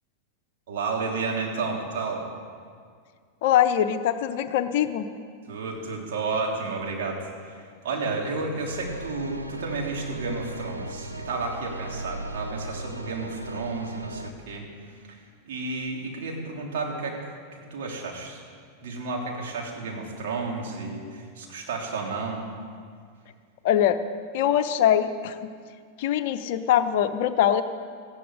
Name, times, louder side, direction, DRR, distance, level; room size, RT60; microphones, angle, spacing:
voice 1, 0.7-2.2 5.5-14.7 15.1-15.2 15.5-18.4 18.8-22.4, right 3 dB, 55° right, -1 dB, 3.4 m, -32 dB
voice 2, 3.4-5.1 23.6-24.0 24.3-25.5 26.0-27.6, left 10 dB, 50° left, 10 dB, 0.8 m, -22 dB
sound 1, 8.7-14.3, right 1 dB, 90° right, 0.8 m, -37 dB
18.0 x 14.5 x 5.0 m, 2.1 s
figure-of-eight pair, 90°, 0 cm